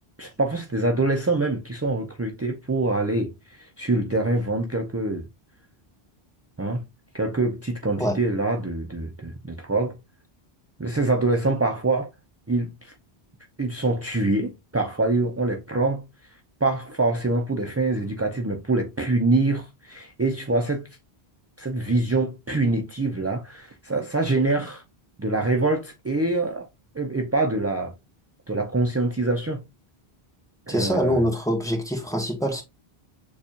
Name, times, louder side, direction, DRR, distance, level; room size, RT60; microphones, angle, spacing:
voice 1, 0.2-5.3 6.6-6.8 7.1-10.0 10.8-12.1 12.5-12.9 13.6-16.0 16.6-20.8 21.6-24.8 25.2-26.7 26.9-27.9 28.5-29.6 30.7-31.2, right 2 dB, 20° right, 0.4 m, -25 dB
voice 2, 30.7-32.6, equal, 5° left, 1.0 m, -24 dB
6.9 x 2.4 x 2.8 m
omnidirectional pair, 1.0 m